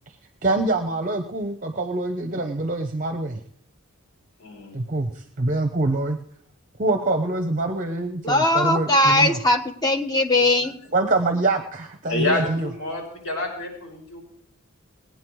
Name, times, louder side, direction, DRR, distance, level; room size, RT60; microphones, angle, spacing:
voice 1, 0.4-3.4 4.7-6.2 6.8-9.4 10.4-10.5 10.9-12.7, right 2 dB, 35° right, 6 dB, 0.8 m, -25 dB
voice 2, 4.4-4.8 12.1-14.2, left 2 dB, 80° left, 0 dB, 5.9 m, -28 dB
voice 3, 8.2-10.8, left 1 dB, 20° left, 4 dB, 1.3 m, -20 dB
19.5 x 9.4 x 4.6 m, 0.63 s
head